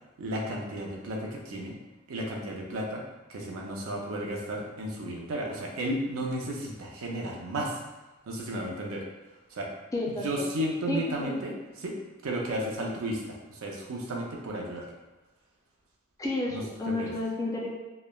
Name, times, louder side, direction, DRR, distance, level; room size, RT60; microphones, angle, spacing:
voice 1, 0.2-1.8 2.1-3.0 3.3-7.8 8.3-9.0 9.5-9.7 10.2-12.0 12.2-14.9 16.5-17.1, right 1 dB, 85° right, -1 dB, 0.5 m, -33 dB
voice 2, 9.9-10.5 10.9-11.4 16.2-17.7, left 2 dB, 15° left, -2 dB, 0.3 m, -31 dB
3.0 x 2.0 x 2.3 m, 1.1 s
head